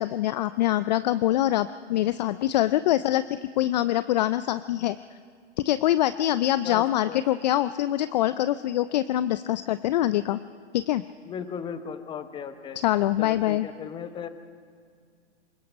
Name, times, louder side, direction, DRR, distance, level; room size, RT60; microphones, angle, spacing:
voice 1, 0.0-5.0 5.6-10.4 10.7-11.0 12.8-13.7, left 13 dB, 40° left, 14 dB, 0.5 m, -24 dB
voice 2, 6.6-7.2 11.3-12.8 13.2-14.3, left 7 dB, 15° left, 10 dB, 1.0 m, -36 dB
27.0 x 18.0 x 5.3 m, 2.1 s
hypercardioid pair, 130°, 34 cm